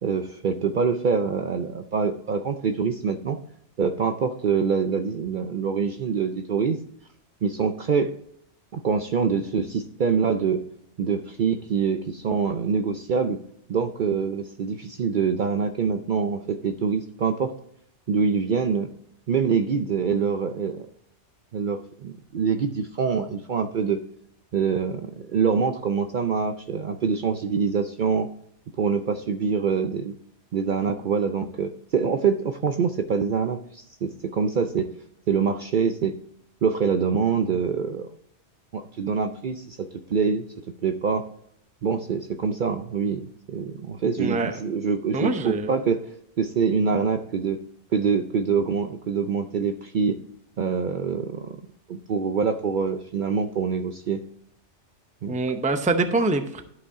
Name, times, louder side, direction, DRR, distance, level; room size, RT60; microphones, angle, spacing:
voice 1, 0.0-3.4 3.8-6.8 7.4-8.1 8.7-10.6 11.0-13.4 13.7-17.5 18.1-18.9 19.3-20.9 21.5-24.0 24.5-28.3 28.8-30.1 30.5-34.9 35.3-36.1 36.6-38.1 38.7-40.4 40.8-41.3 41.8-46.0 46.4-47.6 47.9-50.2 50.6-51.6 51.9-54.2 55.2-55.4, right 6 dB, 55° right, 8 dB, 0.6 m, -25 dB
voice 2, 44.2-44.5 45.1-45.7 55.3-56.6, right 2 dB, 10° right, 8 dB, 0.5 m, -24 dB
11.5 x 5.4 x 3.6 m, 0.69 s
omnidirectional pair, 1.2 m